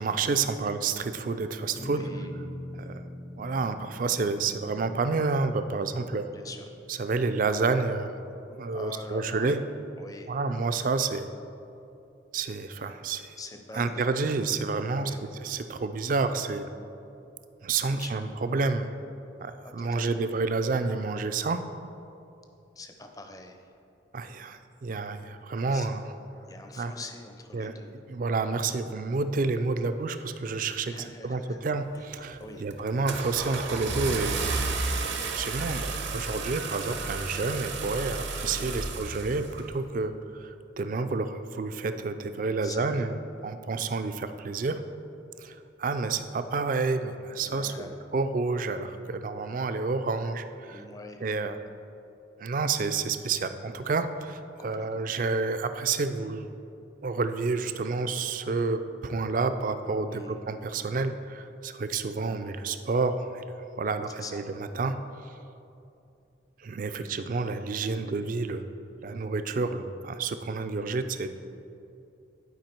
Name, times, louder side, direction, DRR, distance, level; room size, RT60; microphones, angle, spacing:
voice 1, 0.0-2.1 2.8-3.1 3.4-6.3 6.9-8.1 8.5-9.6 10.3-11.3 12.3-13.4 13.7-15.1 15.4-16.7 17.6-18.9 19.4-21.6 24.1-26.0 26.8-26.9 27.5-27.7 28.1-34.4 35.0-43.1 43.4-44.8 45.4-50.8 51.2-51.6 52.4-56.5 57.0-63.4 63.8-64.4 64.8-65.0 65.2-65.3 66.6-68.6 69.0-71.3, right 4 dB, 45° right, 10 dB, 0.3 m, -29 dB
sound 1, 1.8-8.3, left 1 dB, 60° left, 1.2 m, -43 dB
voice 2, 1.8-2.3 6.3-6.7 8.7-9.5 10.0-10.3 13.4-14.1 14.9-15.4 17.9-18.2 19.6-20.2 22.8-23.7 25.7-25.9 26.5-28.0 30.9-31.6 31.9-32.7 38.4-38.8 42.6-43.1 47.4-47.9 50.7-51.2 54.6-55.0 60.0-60.3 64.1-64.4 67.9-68.3, left 3 dB, 20° left, 5 dB, 0.5 m, -44 dB
Car / Engine starting, 31.9-32.2 32.7-39.7, right 3 dB, 70° right, 0.7 m, -32 dB
10.5 x 4.7 x 4.4 m, 2.7 s
head